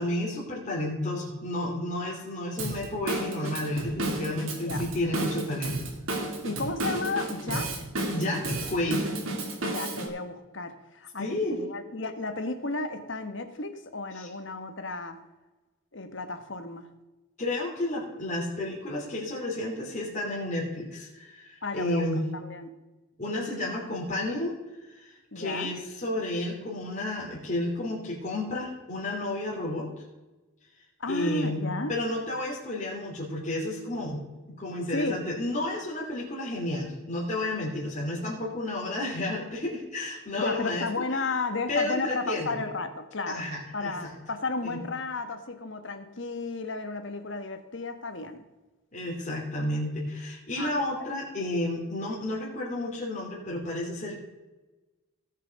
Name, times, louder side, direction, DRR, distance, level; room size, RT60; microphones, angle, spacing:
voice 1, 0.0-5.8 8.1-9.1 11.2-11.6 14.1-14.3 17.4-22.3 23.2-24.6 24.8-29.9 31.1-31.6 31.9-34.2 34.6-41.0 41.7-42.5 43.3-44.1 44.6-44.8 48.9-54.2, left 1 dB, 35° left, -4 dB, 3.0 m, -31 dB
Drum kit / Drum, 2.6-10.1, right 1 dB, 75° right, 2.2 m, -32 dB
voice 2, 6.4-7.8 9.6-15.2 15.9-16.9 21.6-22.1 22.3-22.7 25.3-25.7 31.0-31.9 34.9-35.2 40.4-43.5 43.7-48.4 50.6-50.7, left 3 dB, 60° left, 8 dB, 1.2 m, -33 dB
17.5 x 5.8 x 5.2 m, 1.1 s
head